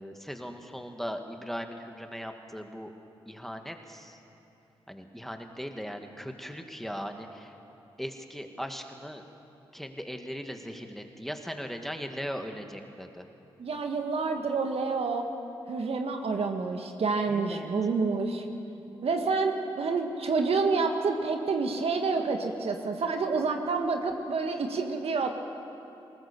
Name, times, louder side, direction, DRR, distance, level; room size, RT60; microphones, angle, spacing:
voice 1, 0.0-2.9 3.3-4.2 4.9-7.5 8.0-9.2 9.7-13.2 17.3-17.7, equal, ahead, 5 dB, 2.2 m, -39 dB
voice 2, 13.6-15.3 15.7-18.4 19.0-25.3, right 4 dB, 65° right, 4 dB, 1.8 m, -28 dB
21.0 x 19.0 x 7.1 m, 2.9 s
supercardioid pair, 40°, 11 cm